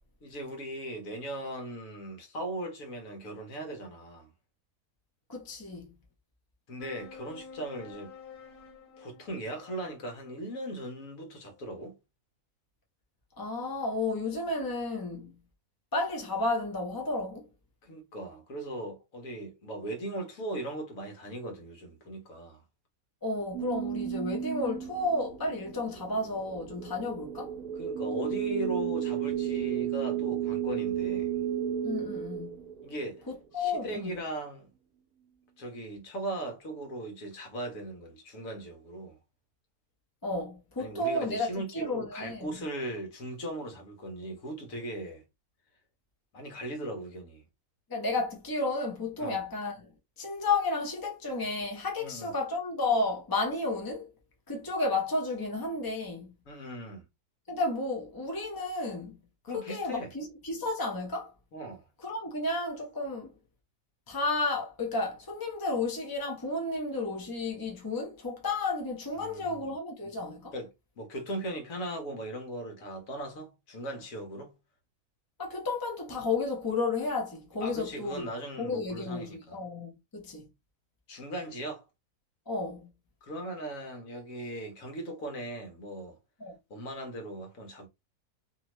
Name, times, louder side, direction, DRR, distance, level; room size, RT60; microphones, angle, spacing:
voice 1, 0.2-4.3 6.7-8.1 9.0-12.0 17.8-22.6 27.8-31.4 32.8-33.2 33.5-34.7 35.6-39.2 40.8-45.2 46.3-47.4 49.2-49.4 52.0-52.3 56.5-57.1 59.5-60.1 61.5-61.8 69.2-69.7 70.5-70.7 71.0-74.5 77.6-79.6 81.1-81.8 83.2-86.2 86.7-87.9, right 1 dB, 60° left, 1.4 m, -38 dB
voice 2, 5.3-5.9 13.4-15.3 15.9-17.4 23.2-27.5 31.8-32.6 33.3-34.2 40.2-42.5 47.9-49.9 50.2-54.1 54.5-56.3 57.5-59.2 59.5-61.3 62.0-63.3 64.1-70.5 75.4-78.3 78.6-80.5 82.5-82.9 86.4-86.6, left 2 dB, 30° left, 0.4 m, -32 dB
sound 1, 6.8-11.6, left 5 dB, 85° left, 1.4 m, -51 dB
sound 2, 23.5-33.3, right 10 dB, 80° right, 1.1 m, -33 dB
2.8 x 2.8 x 3.0 m
omnidirectional pair, 1.6 m